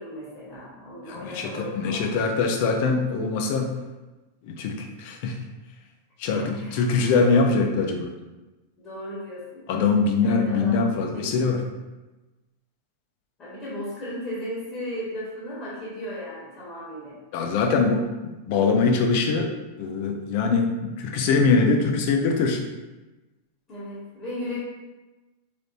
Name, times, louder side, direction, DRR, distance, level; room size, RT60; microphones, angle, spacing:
voice 1, 0.0-2.2 6.3-6.8 8.8-9.7 10.2-10.8 11.1-11.5 13.4-17.2 23.7-24.6, left 1 dB, 30° left, -7 dB, 1.3 m, -36 dB
voice 2, 1.1-3.7 4.4-5.4 6.2-8.1 9.7-11.6 17.3-19.5 19.8-22.6, left 4 dB, 50° left, 3 dB, 0.5 m, -23 dB
3.8 x 3.4 x 2.6 m, 1.1 s
figure-of-eight pair, 90°, 0 cm